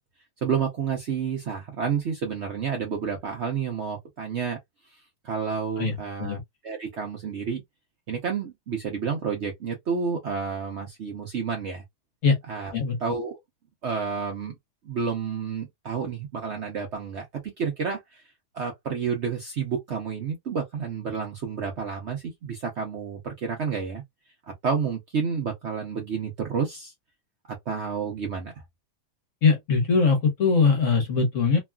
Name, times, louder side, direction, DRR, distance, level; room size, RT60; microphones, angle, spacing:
voice 1, 0.4-4.6 5.2-6.4 6.6-7.6 8.1-11.8 12.5-12.7 13.0-13.4 13.8-14.6 14.8-18.2 18.5-24.0 24.6-26.9 27.5-28.5, right 6 dB, 60° right, 0.8 m, -30 dB
voice 2, 5.8-6.4 12.2-12.4 12.7-13.0 29.4-31.6, left 4 dB, 55° left, 1.3 m, -21 dB
3.0 x 2.3 x 2.2 m
omnidirectional pair, 1.7 m